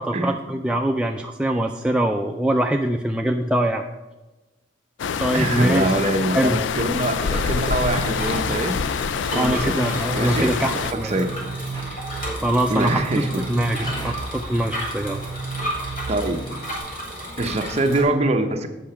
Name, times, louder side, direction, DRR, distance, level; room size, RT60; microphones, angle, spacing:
voice 1, 0.0-3.8 5.2-6.0 6.3-6.6 9.3-11.1 11.9-12.0 12.3-13.2 13.5-15.2, right 1 dB, 5° right, 2 dB, 0.3 m, -23 dB
sound 1, 5.0-10.9, left 6 dB, 75° left, 0.4 m, -26 dB
voice 2, 5.3-8.8 9.3-9.7 10.1-11.3 12.7-13.4 13.8-14.0 16.1-16.4 17.4-18.7, right 2 dB, 35° right, 5 dB, 0.8 m, -24 dB
Bicycle, 6.3-18.0, equal, 50° left, 2.9 m, -34 dB
sound 2, 7.3-16.8, right 3 dB, 25° left, 1.4 m, -34 dB
8.4 x 5.8 x 5.6 m, 1.1 s
head